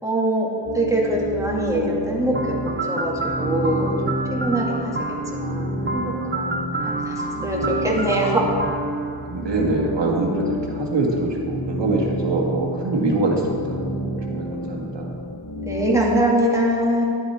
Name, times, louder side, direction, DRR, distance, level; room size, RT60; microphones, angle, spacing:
voice 1, 0.0-0.5 0.7-4.9 5.3-8.5 15.6-17.1, right 1 dB, 5° right, -3 dB, 2.3 m, -23 dB
sound 1, 0.6-15.9, equal, 80° left, 2.0 m, -29 dB
sound 2, 2.3-10.2, right 2 dB, 25° right, 0.8 m, -29 dB
voice 2, 9.2-13.8 14.0-15.2, right 2 dB, 65° right, -1 dB, 2.0 m, -24 dB
11.0 x 10.0 x 4.5 m, 2.4 s
wide cardioid pair, 85°, 47 cm